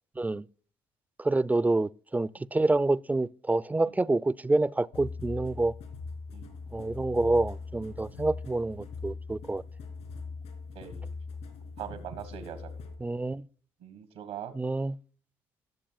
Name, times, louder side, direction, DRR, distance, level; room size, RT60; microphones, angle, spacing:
voice 1, 1.2-5.7 6.7-9.6 13.0-13.5 14.5-15.0, right 2 dB, 15° right, 0.3 m, -27 dB
sound 1, 4.9-13.0, left 4 dB, 80° left, 2.7 m, -41 dB
voice 2, 10.7-11.1 11.8-12.7 13.8-14.5, right 9 dB, 90° right, 1.5 m, -41 dB
18.5 x 7.3 x 2.3 m
supercardioid pair, 60°, 12 cm